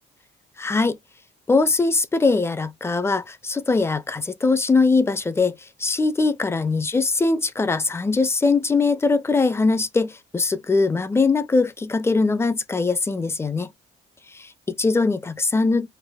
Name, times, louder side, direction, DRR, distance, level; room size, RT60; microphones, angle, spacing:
voice 1, 0.6-1.0 1.5-13.7 14.3-15.9, left 3 dB, 15° left, 0.4 m, -21 dB
3.3 x 2.1 x 2.2 m
cardioid pair, 90°, 20 cm